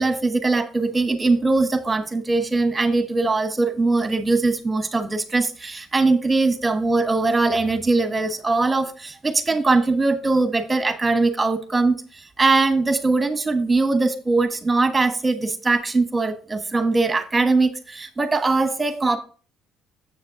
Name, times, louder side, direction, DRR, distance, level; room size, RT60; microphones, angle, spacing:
voice 1, 0.0-19.2, right 3 dB, 20° right, 9 dB, 1.3 m, -21 dB
7.6 x 6.4 x 3.8 m, 0.40 s
supercardioid pair, 85°, 0 cm